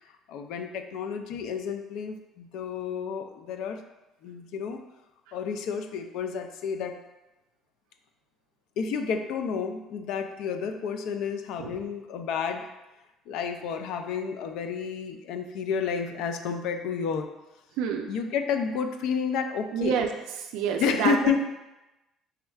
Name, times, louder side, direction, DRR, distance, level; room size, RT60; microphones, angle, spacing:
voice 1, 0.3-3.8 4.2-4.8 5.3-7.0 8.8-12.7 13.3-17.3 18.1-20.0 20.8-21.5, left 6 dB, 70° left, 6 dB, 0.3 m, -30 dB
voice 2, 17.8-18.1 19.7-20.1 20.4-21.3, right 7 dB, 90° right, 3 dB, 0.3 m, -27 dB
4.3 x 3.5 x 2.3 m, 1.0 s
cardioid pair, 160°, 0 cm